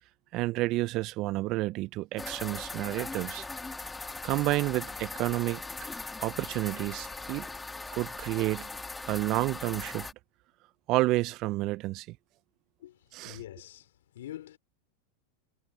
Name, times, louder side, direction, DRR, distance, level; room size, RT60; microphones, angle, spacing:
voice 1, 0.3-3.4 4.2-5.6 6.2-7.5 7.9-8.7 9.1-10.1 10.9-12.1 13.1-13.4, right 19 dB, 45° right, 0.9 m, -30 dB
sound 1, 2.2-10.1, left 3 dB, 10° left, 1.8 m, -40 dB
voice 2, 13.2-13.9 14.1-14.6, left 13 dB, 65° left, 3.1 m, -44 dB
figure-of-eight pair, 90°, 0 cm